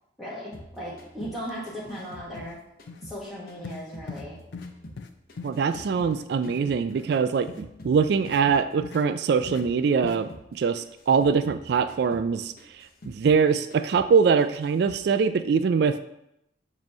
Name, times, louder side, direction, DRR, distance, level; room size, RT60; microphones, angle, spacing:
voice 1, 0.2-2.6 3.0-4.4, equal, ahead, -9 dB, 1.1 m, -37 dB
sound 1, 0.5-3.2 3.5-6.2 6.4-9.8 10.1-10.5 10.7-13.5 13.7-14.1 14.4-15.0, equal, 50° left, 0.8 m, -47 dB
sound 2, 1.4-1.5 1.9-2.1 2.4-2.6 2.9-3.0 3.6-3.8 4.1-4.3 4.5-4.7 5.0-5.1 5.4-6.6 6.9-7.1 7.5-7.6 8.3-8.4 8.8-9.1 9.5-9.6 10.0-10.2, left 4 dB, 70° left, 0.4 m, -40 dB
voice 2, 5.4-16.0, right 5 dB, 60° right, 10 dB, 0.3 m, -23 dB
7.3 x 3.0 x 5.3 m, 0.81 s
head